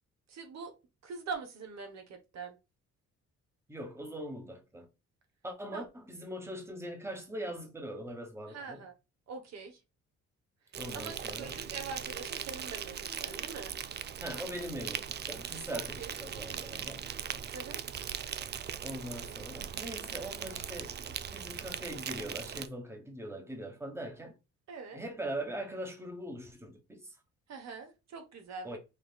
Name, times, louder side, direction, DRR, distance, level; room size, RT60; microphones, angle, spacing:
voice 1, 0.3-0.7 1.0-2.6 5.7-5.8 8.5-8.9 9.3-9.8 10.9-13.7 15.7-16.7 17.5-17.8 24.7-25.0 27.5-28.8, right 5 dB, 60° right, 0.9 m, -43 dB
voice 2, 3.7-4.9 5.4-8.8 10.8-11.6 14.2-17.0 18.8-24.4 24.9-27.2 28.6-28.8, right 1 dB, 10° right, 1.1 m, -41 dB
Insect, 10.7-22.7, right 8 dB, 35° right, 0.4 m, -40 dB
5.5 x 2.3 x 2.3 m
cardioid pair, 90°, 30 cm